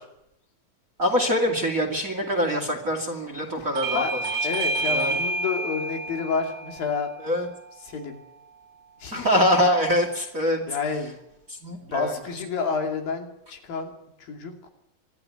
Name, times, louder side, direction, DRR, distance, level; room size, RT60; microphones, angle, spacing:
voice 1, 1.0-4.0 4.9-5.1 7.2-7.5 9.1-10.6 11.6-12.1, equal, 25° right, 4 dB, 2.3 m, -24 dB
Bell / Doorbell, 3.8-8.9, right 1 dB, 85° right, 3.2 m, -30 dB
voice 2, 4.4-7.1 7.8-8.2 9.0-9.4 10.7-11.2 11.8-13.9 14.2-14.5, left 5 dB, 75° left, 3 dB, 4.5 m, -29 dB
25.0 x 13.5 x 9.4 m, 0.84 s
omnidirectional pair, 4.1 m